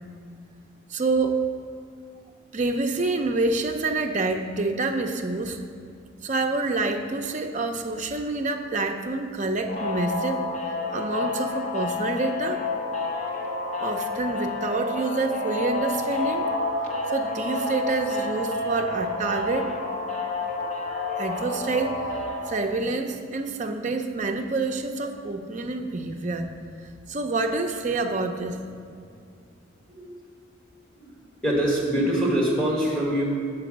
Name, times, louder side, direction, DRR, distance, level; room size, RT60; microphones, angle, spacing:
voice 1, 0.9-1.4 2.5-5.6 6.2-10.5 10.9-12.6 13.8-16.4 17.1-19.7 21.2-22.2 22.5-26.5 27.1-28.6, right 3 dB, 35° right, 4 dB, 0.5 m, -27 dB
sound 1, 9.7-22.4, left 2 dB, 35° left, 0.8 m, -29 dB
voice 2, 31.4-33.3, right 1 dB, 5° left, -5 dB, 1.6 m, -24 dB
6.8 x 4.6 x 6.1 m, 2.4 s
head